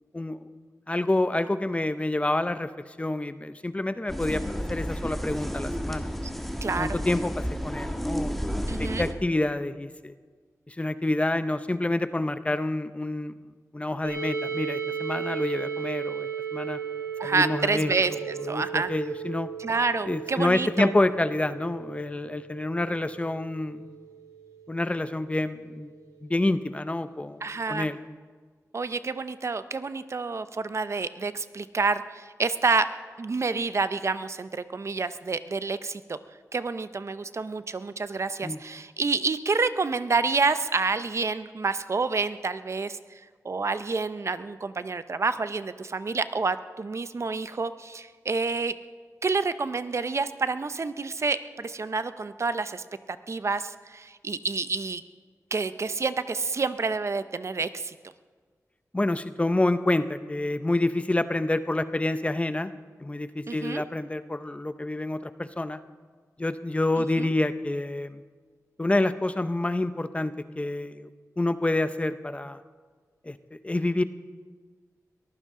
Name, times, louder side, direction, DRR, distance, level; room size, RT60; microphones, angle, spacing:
voice 1, 0.9-2.7 3.0-4.4 4.7-6.1 6.8-8.4 8.8-10.1 10.7-13.3 13.7-16.8 17.2-17.9 18.4-19.5 20.1-23.8 24.7-25.9 26.2-27.4 27.7-28.0 38.4-38.6 58.9-62.7 63.0-65.8 66.4-68.2 68.8-71.1 71.4-72.6 73.2-74.0, left 2 dB, 20° left, 12 dB, 0.6 m, -28 dB
sound 1, 4.1-9.1, equal, ahead, 1.2 m, -31 dB
voice 2, 6.6-7.0 8.7-9.1 17.2-18.9 19.6-20.9 27.4-27.9 28.7-32.9 33.2-36.2 36.5-43.0 43.4-48.7 49.2-52.8 53.3-55.0 55.5-57.9 63.5-63.8 67.2-67.3, right 4 dB, 50° right, 12 dB, 0.6 m, -28 dB
sound 2, 14.0-25.7, right 7 dB, 85° right, 5.4 m, -36 dB
22.5 x 15.0 x 3.7 m, 1.5 s
wide cardioid pair, 85°, 6 cm